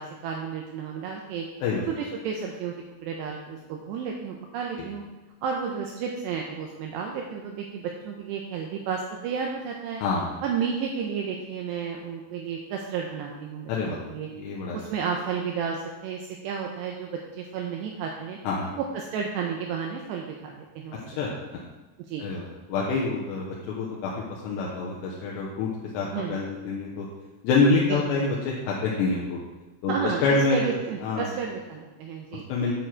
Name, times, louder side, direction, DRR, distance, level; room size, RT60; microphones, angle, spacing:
voice 1, 0.0-1.5 1.9-2.7 3.0-5.0 5.4-10.0 10.4-14.3 14.7-18.4 18.8-21.0 21.3-21.4 22.1-22.3 26.0-26.4 27.9-28.2 29.9-30.2 30.5-32.5, right 6 dB, 80° right, 1 dB, 2.6 m, -32 dB
voice 2, 10.0-10.4 13.7-14.0 14.3-14.8 18.4-18.7 21.2-21.3 22.2-25.7 25.9-27.1 27.4-29.4 29.8-31.3 32.5-32.7, left 3 dB, 75° left, -4 dB, 2.9 m, -26 dB
9.3 x 6.3 x 4.5 m, 1.1 s
omnidirectional pair, 5.5 m